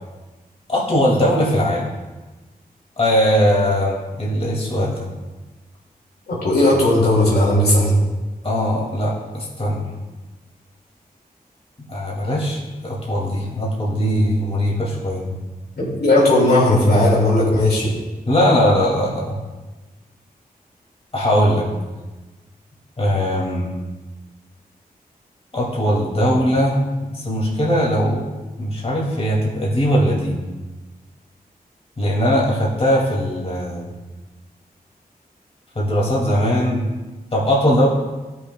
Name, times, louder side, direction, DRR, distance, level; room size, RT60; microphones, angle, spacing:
voice 1, 0.7-1.9 3.0-5.1 8.4-9.8 11.9-15.3 18.3-19.4 21.1-21.7 23.0-23.7 25.5-26.8 27.1-28.3 28.6-30.4 32.0-33.9 35.8-36.9 37.3-37.9, equal, 40° left, -4 dB, 2.3 m, -20 dB
voice 2, 6.3-8.0 15.8-17.9, left 1 dB, 80° left, -5 dB, 2.2 m, -16 dB
13.0 x 6.3 x 2.2 m, 1.2 s
cardioid pair, 65°, 16 cm